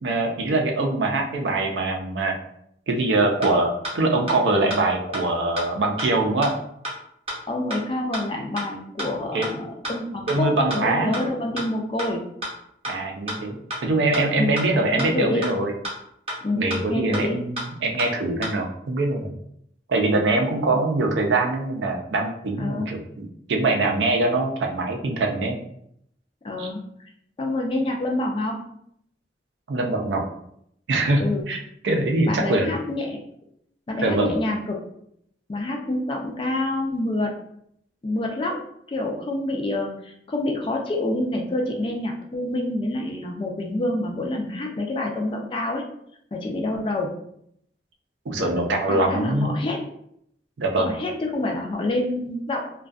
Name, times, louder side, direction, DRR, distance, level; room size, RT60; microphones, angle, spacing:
voice 1, 0.0-2.3 2.9-6.5 9.3-9.5 10.3-11.1 12.9-15.7 16.5-19.3 19.9-25.6 26.6-26.7 29.7-30.2 30.9-31.2 31.5-31.6 31.8-32.7 34.0-34.3 48.3-49.5 50.6-50.9, right 2 dB, 85° right, 3 dB, 0.4 m, -23 dB
sound 1, 3.4-3.5 3.8-3.9 4.3-4.4 4.7-4.8 5.1-5.2 5.6-5.7 6.0-6.1 6.4-6.5 6.8-6.9 7.3-7.4 7.7-7.8 8.1-8.2 8.6-8.7 9.0-9.1 9.4-9.5 9.8-9.9 10.3-10.4 10.7-10.8 11.1-11.2 11.6-11.7 12.0-12.1 12.4-12.5 12.8-12.9 13.3-13.4 13.7-13.8 14.1-14.2 14.6-14.7 15.0-15.1 15.4-15.5 15.8-15.9 16.3-16.4 16.7-16.8 17.1-17.2 17.6-17.7 18.0-18.1 18.4-18.5, equal, 35° right, 0.7 m, -29 dB
voice 2, 7.5-12.2 14.3-14.6 14.9-15.5 16.4-17.4 22.6-22.9 26.4-26.8 27.4-28.6 31.2-31.5 32.3-33.2 33.9-34.8 35.5-37.4 38.0-38.6 38.9-45.8 46.3-47.1 48.4-49.8 50.8-52.7, left 1 dB, 30° left, 1 dB, 0.3 m, -27 dB
2.5 x 2.2 x 2.3 m, 0.72 s
head